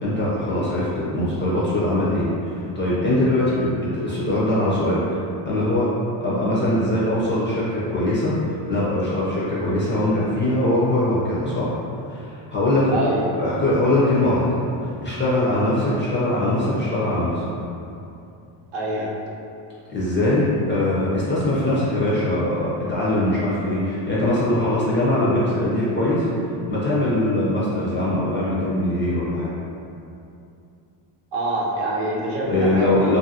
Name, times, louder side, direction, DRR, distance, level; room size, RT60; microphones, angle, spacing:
voice 1, 0.0-5.1 5.4-5.9 6.2-11.7 12.1-17.5 19.9-29.5 32.5-33.2, left 1 dB, 25° left, -8 dB, 0.5 m, -22 dB
voice 2, 12.9-13.3 18.7-19.1 31.3-33.2, right 1 dB, 55° right, -4 dB, 0.7 m, -25 dB
2.6 x 2.5 x 2.7 m, 2.6 s
cardioid pair, 130°, 50 cm